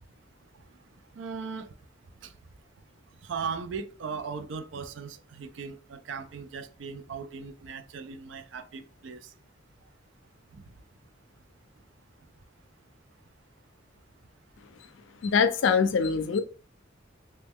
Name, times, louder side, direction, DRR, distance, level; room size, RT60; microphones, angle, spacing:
voice 1, 1.1-1.7 2.2-2.3 3.2-9.3 10.5-10.6, right 5 dB, 70° right, 0.4 m, -38 dB
voice 2, 15.2-16.4, left 5 dB, 70° left, 0.4 m, -23 dB
3.0 x 2.2 x 3.5 m
head